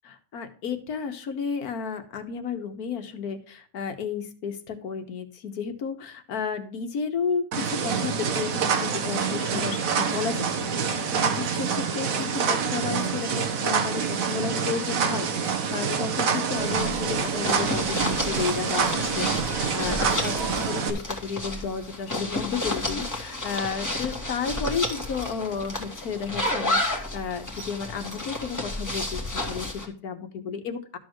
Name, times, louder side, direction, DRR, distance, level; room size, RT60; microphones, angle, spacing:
voice 1, 0.1-31.0, left 6 dB, 85° left, 8 dB, 1.6 m, -32 dB
sound 1, 7.5-20.9, right 6 dB, 65° right, 1.4 m, -26 dB
sound 2, 16.6-29.9, left 1 dB, 15° left, 1.5 m, -31 dB
12.5 x 6.5 x 3.1 m, 0.43 s
omnidirectional pair, 1.6 m